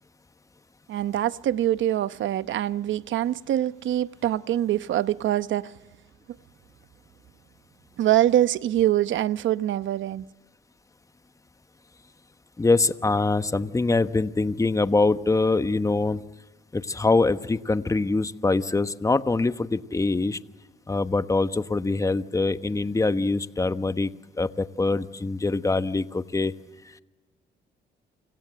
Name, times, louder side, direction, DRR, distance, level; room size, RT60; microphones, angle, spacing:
voice 1, 0.9-5.7 8.0-10.2, right 12 dB, 75° right, 0.9 m, -24 dB
voice 2, 12.6-16.2 16.7-20.4 20.9-24.1 24.4-26.5, left 3 dB, 15° left, 1.1 m, -24 dB
29.5 x 26.0 x 7.7 m
cardioid pair, 90°, 20 cm